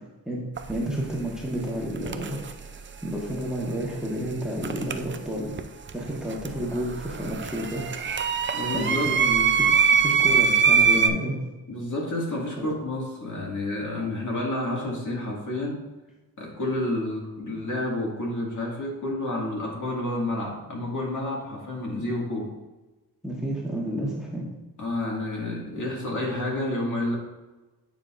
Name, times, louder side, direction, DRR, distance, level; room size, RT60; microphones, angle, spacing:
voice 1, 0.3-2.6 3.0-8.0 8.7-9.5 9.9-11.4 12.6-12.7 23.2-24.5, right 1 dB, ahead, -3 dB, 1.3 m, -31 dB
sound 1, 0.6-0.7 2.0-2.5 4.6-5.6 5.9-11.1, right 6 dB, 30° right, 0.4 m, -22 dB
voice 2, 8.5-9.1 11.7-15.8 16.4-22.5 24.8-27.2, left 1 dB, 50° left, -3 dB, 2.0 m, -29 dB
9.1 x 4.7 x 2.5 m, 1.1 s
cardioid pair, 90°, 38 cm